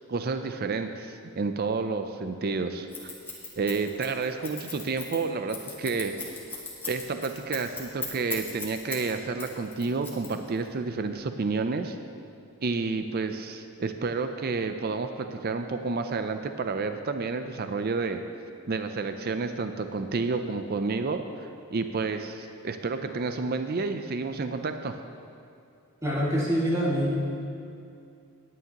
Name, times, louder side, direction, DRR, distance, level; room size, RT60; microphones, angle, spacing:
voice 1, 0.1-3.1 3.6-6.2 6.9-12.0 12.6-18.2 18.7-24.9, right 4 dB, 45° right, 8 dB, 0.4 m, -30 dB
Scissors, 2.9-9.1 9.4-10.7, left 4 dB, 10° left, 1.6 m, -37 dB
voice 2, 26.0-27.1, equal, 15° right, -6 dB, 2.0 m, -25 dB
18.5 x 9.2 x 2.9 m, 2.5 s
head